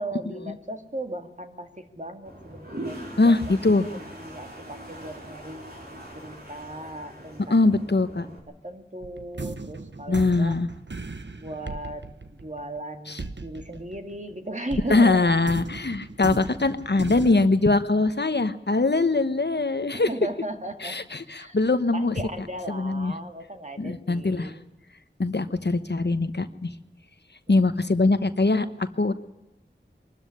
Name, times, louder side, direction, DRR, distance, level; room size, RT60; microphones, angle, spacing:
voice 1, 0.0-3.5 3.8-5.6 6.1-7.8 8.2-10.5 11.4-15.3 19.9-21.0 21.3-21.6 21.9-24.6 27.5-27.9, right 1 dB, 40° right, 5 dB, 2.1 m, -37 dB
Toilet flush, 2.2-8.4, right 1 dB, 55° right, 4.9 m, -41 dB
voice 2, 3.2-3.9 7.5-8.3 10.1-10.7 13.1-13.2 14.9-20.1 20.8-22.1 22.7-23.1 23.8-24.5 25.2-26.7 27.5-28.7 29.0-29.1, left 3 dB, 65° left, 11 dB, 1.1 m, -22 dB
sound 1, 9.0-14.3 14.7-17.5, right 3 dB, 70° right, 1.3 m, -37 dB
23.0 x 13.0 x 9.9 m, 0.96 s
wide cardioid pair, 45°, 19 cm